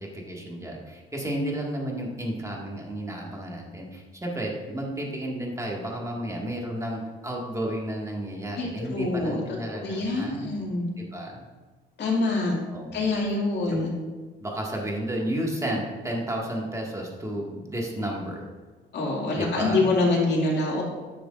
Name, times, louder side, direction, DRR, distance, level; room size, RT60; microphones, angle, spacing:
voice 1, 0.0-10.6 11.0-11.5 12.7-12.9 13.7-13.8 14.4-18.5 19.3-19.9, right 1 dB, 15° right, -2 dB, 1.9 m, -32 dB
voice 2, 8.6-9.4 9.7-10.9 12.0-12.6 12.9-13.9 18.9-20.8, left 2 dB, 60° left, -3 dB, 2.3 m, -25 dB
10.5 x 6.7 x 2.5 m, 1.3 s
cardioid pair, 90°, 20 cm